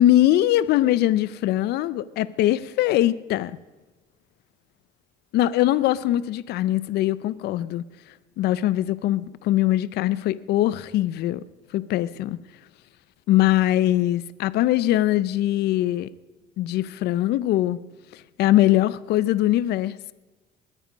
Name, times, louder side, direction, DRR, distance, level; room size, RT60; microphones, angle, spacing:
voice 1, 0.0-3.6 5.3-7.8 8.4-11.4 11.7-12.4 13.3-16.1 16.6-17.8 18.1-20.1, left 14 dB, 75° left, 0.5 m, -22 dB
20.5 x 10.0 x 5.1 m
cardioid pair, 110°, 17 cm